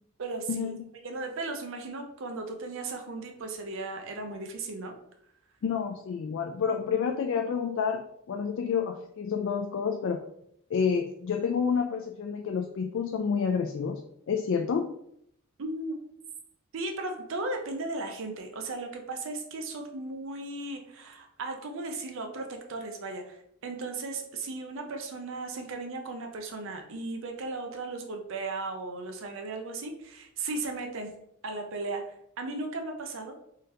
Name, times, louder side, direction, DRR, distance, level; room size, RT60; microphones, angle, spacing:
voice 1, 0.2-0.7 1.0-4.9 15.6-16.0 16.7-31.1 31.4-33.3, right 3 dB, 65° right, 4 dB, 0.6 m, -36 dB
voice 2, 5.6-10.2 10.7-14.0 14.3-14.9, left 6 dB, 60° left, 3 dB, 0.3 m, -29 dB
3.7 x 2.9 x 3.3 m, 0.74 s
head